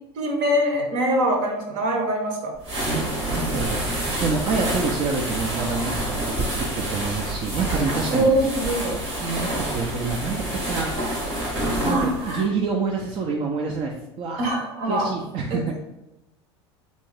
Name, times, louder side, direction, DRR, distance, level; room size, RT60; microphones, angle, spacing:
voice 1, 0.1-2.5 8.1-9.0 11.8-12.5 14.4-15.1 15.5-15.6, right 1 dB, 60° right, 1 dB, 1.0 m, -23 dB
sound 1, 2.6-12.4, right 1 dB, 90° right, 1.4 m, -28 dB
voice 2, 2.8-3.8 4.2-8.3 9.2-11.3 11.8-14.4 14.9-15.7, right 4 dB, 45° right, -1 dB, 0.5 m, -27 dB
3.3 x 2.7 x 3.3 m, 0.96 s
hypercardioid pair, 80°, 14 cm